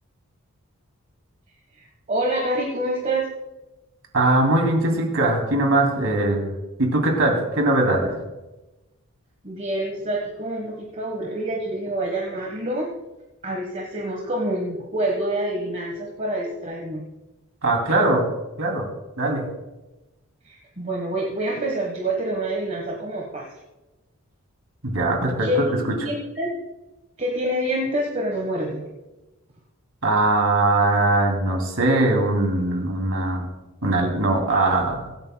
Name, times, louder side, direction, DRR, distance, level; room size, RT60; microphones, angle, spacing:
voice 1, 1.7-3.3 9.4-12.9 13.4-17.0 20.4-23.5 25.4-26.5 27.2-28.8, right 1 dB, 35° right, 0 dB, 1.3 m, -27 dB
voice 2, 4.1-6.5 6.8-8.2 17.6-18.2 18.6-18.9 19.2-19.5 24.8-25.5 30.0-33.5 33.8-35.1, right 2 dB, 75° right, 1 dB, 2.8 m, -21 dB
23.5 x 8.9 x 2.3 m, 1.1 s
head